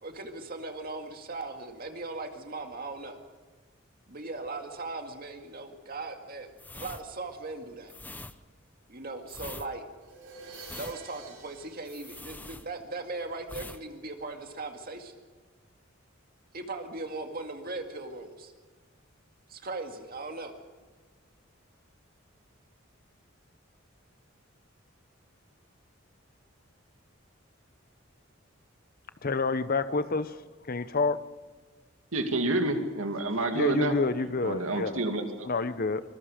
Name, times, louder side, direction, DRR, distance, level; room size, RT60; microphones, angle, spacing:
voice 1, 0.0-3.2 4.1-7.9 8.9-9.8 10.8-15.1 16.5-18.5 19.5-20.5, right 3 dB, 45° right, 4 dB, 2.2 m, -38 dB
sound 1, 6.5-13.1 13.4-13.8 14.1-14.3, left 2 dB, 10° left, 0.7 m, -44 dB
Crash cymbal, 10.0-13.0, right 4 dB, 65° right, 5.9 m, -49 dB
voice 2, 29.2-31.2 33.5-35.0 35.5-36.0, left 3 dB, 45° left, 13 dB, 0.8 m, -28 dB
voice 3, 32.1-34.0 34.4-35.5, right 1 dB, 85° right, 5 dB, 2.5 m, -28 dB
24.0 x 21.0 x 5.1 m, 1.3 s
head